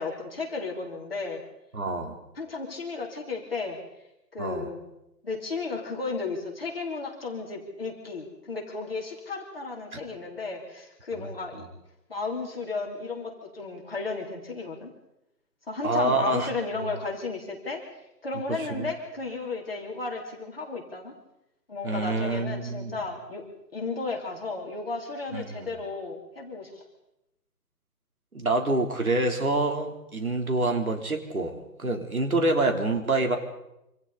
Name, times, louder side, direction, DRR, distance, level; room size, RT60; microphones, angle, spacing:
voice 1, 0.0-1.4 2.4-3.8 4.3-4.8 5.2-11.7 12.1-14.9 15.7-17.8 18.2-21.1 21.7-23.4 23.7-26.8, left 3 dB, 35° left, -1 dB, 3.6 m, -34 dB
voice 2, 1.7-2.2 4.4-4.7 9.9-10.0 11.1-11.3 15.8-16.5 18.5-18.9 21.8-22.9 25.3-25.7 28.3-33.4, right 2 dB, 60° right, 3 dB, 3.9 m, -27 dB
27.0 x 26.5 x 4.2 m, 0.88 s
figure-of-eight pair, 180°, 49 cm